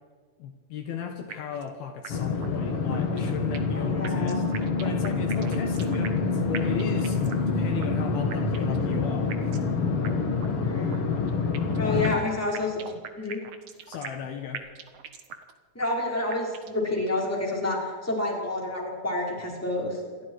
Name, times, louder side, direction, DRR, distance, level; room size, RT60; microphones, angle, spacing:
voice 1, 0.4-4.4 4.8-9.4 11.8-12.2 13.9-14.7, left 7 dB, 70° left, 5 dB, 3.3 m, -36 dB
sound 1, 1.3-1.7 2.0-2.1 2.4-2.5 2.9-3.8 4.0-6.3 6.5-7.5 7.8-7.9 8.3-8.8 9.3-9.7 10.0-10.1 10.4-10.5 10.9-11.8 12.0-14.3 14.5-15.5 15.8-15.9 16.3-16.8, right 8 dB, 60° right, 1.6 m, -40 dB
sound 2, 2.1-12.2, left 4 dB, 45° left, 2.2 m, -27 dB
voice 2, 3.7-4.4 10.6-11.1 11.7-12.8 13.1-13.4 15.7-20.0, left 2 dB, 5° left, -2 dB, 4.9 m, -29 dB
28.0 x 24.0 x 4.9 m, 1.5 s
omnidirectional pair, 4.7 m